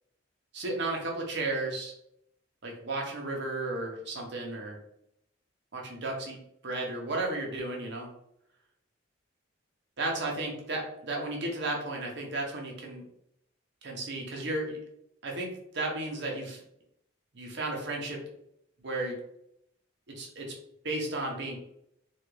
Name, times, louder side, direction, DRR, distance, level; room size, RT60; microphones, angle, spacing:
voice 1, 0.5-1.9 2.6-4.8 5.7-6.4 6.6-8.1 10.0-13.0 13.8-14.8 15.2-16.6 17.3-18.2 18.8-19.2 20.2-20.5 20.8-21.6, right 2 dB, 60° right, 0 dB, 0.8 m, -33 dB
3.1 x 2.3 x 3.1 m, 0.76 s
head